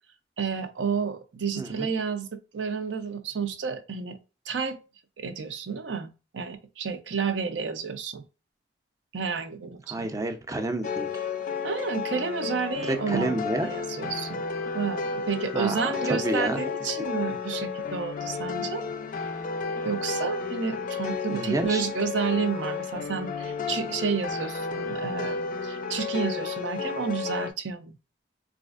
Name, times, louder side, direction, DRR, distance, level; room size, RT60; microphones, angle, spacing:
voice 1, 0.4-2.3 2.5-4.2 4.5-4.8 5.2-8.2 9.1-10.1 11.6-14.4 14.7-18.8 19.8-27.9, right 6 dB, 80° right, 0.5 m, -30 dB
voice 2, 9.9-11.1 12.8-13.7 15.5-16.6 21.3-21.8, right 2 dB, 20° right, 0.5 m, -29 dB
sound 1, 10.8-27.5, left 5 dB, 45° left, 0.4 m, -32 dB
4.1 x 2.4 x 2.4 m
head